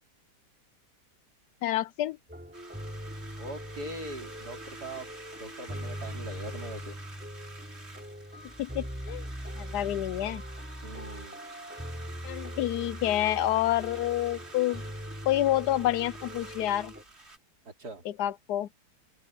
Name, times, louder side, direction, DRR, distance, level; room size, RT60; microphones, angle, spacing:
voice 1, 1.6-2.2 8.6-9.3 9.6-10.4 12.2-14.8 15.3-16.9 18.1-18.8, left 13 dB, 75° left, 1.2 m, -28 dB
sound 1, 2.3-17.0, equal, 5° right, 4.0 m, -41 dB
sound 2, 2.5-17.4, right 2 dB, 40° right, 4.1 m, -49 dB
voice 2, 3.4-5.1 5.4-7.0 10.8-11.4 17.6-18.0, right 1 dB, 70° right, 4.1 m, -41 dB
open air
omnidirectional pair, 1.8 m